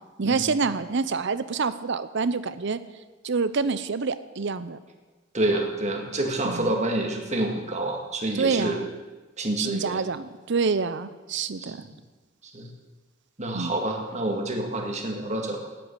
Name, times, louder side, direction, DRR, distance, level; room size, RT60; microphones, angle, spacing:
voice 1, 0.2-2.8 3.2-4.8 6.4-6.8 8.3-8.9 9.6-11.9 13.5-13.8, right 4 dB, 60° right, 14 dB, 0.7 m, -27 dB
voice 2, 5.3-8.8 9.4-10.0 11.6-11.9 12.5-12.7 13.4-15.7, right 1 dB, 35° right, 2 dB, 1.9 m, -28 dB
9.4 x 8.7 x 9.7 m, 1.3 s
head